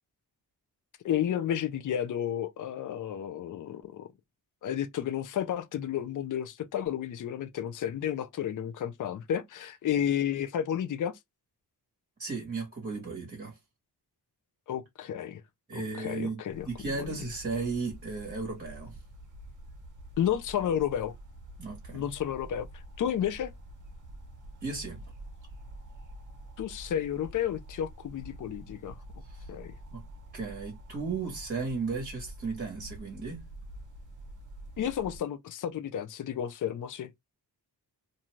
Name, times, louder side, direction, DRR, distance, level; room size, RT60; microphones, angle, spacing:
voice 1, 1.0-4.1 4.6-11.2 14.7-15.4 16.0-16.7 16.9-17.1 20.2-21.1 21.9-22.7 23.0-23.5 26.6-29.0 29.5-29.7 34.8-37.2, left 10 dB, 50° left, 0.4 m, -31 dB
voice 2, 12.2-13.6 15.7-19.0 21.6-22.1 24.6-25.0 29.3-29.5 29.9-30.0 30.3-33.4, right 4 dB, 25° right, 1.1 m, -35 dB
sound 1, 16.5-35.2, right 1 dB, 50° right, 0.8 m, -47 dB
2.6 x 2.3 x 2.9 m
wide cardioid pair, 180°, 40 cm